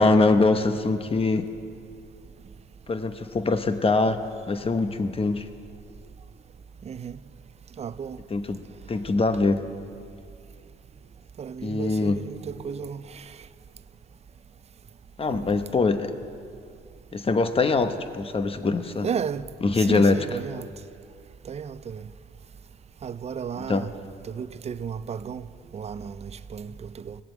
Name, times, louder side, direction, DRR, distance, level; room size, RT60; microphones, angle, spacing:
voice 1, 0.0-1.5 2.9-4.2 4.5-5.5 8.3-9.6 11.6-12.2 15.2-16.1 17.1-19.1 19.6-20.2 23.7-23.9, left 3 dB, 30° left, 0.9 m, -23 dB
voice 2, 6.8-7.2 7.8-8.2 11.4-13.2 15.3-15.5 19.0-19.5 19.8-20.6 21.5-22.0 23.0-23.9 24.2-25.4 25.7-27.2, right 7 dB, 35° right, 0.4 m, -34 dB
17.5 x 7.5 x 9.0 m
cardioid pair, 90°, 20 cm